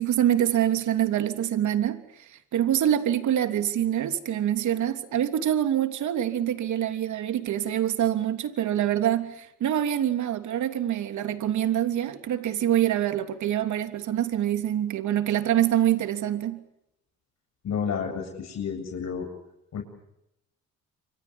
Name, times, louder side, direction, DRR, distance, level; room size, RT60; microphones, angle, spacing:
voice 1, 0.0-16.6, right 11 dB, 75° right, 3.2 m, -25 dB
voice 2, 17.6-19.3 19.7-19.8, left 6 dB, 60° left, 7.8 m, -30 dB
28.5 x 26.0 x 7.2 m
cardioid pair, 90°, 30 cm